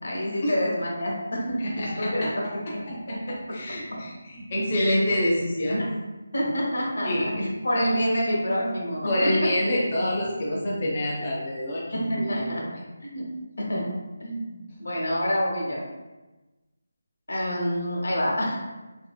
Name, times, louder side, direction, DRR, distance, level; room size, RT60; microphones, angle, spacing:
voice 1, 0.0-3.4 3.9-4.0 5.8-5.9 6.3-7.3 7.6-9.5 11.9-12.6 13.0-13.3 13.6-13.9 14.2-15.9 17.3-18.6, equal, 90° left, -2 dB, 0.8 m, -27 dB
voice 2, 1.6-2.3 3.1-5.9 7.0-7.5 9.1-12.6, left 1 dB, 25° left, -6 dB, 0.5 m, -27 dB
2.6 x 2.5 x 2.2 m, 1.1 s
figure-of-eight pair, 175°, 0 cm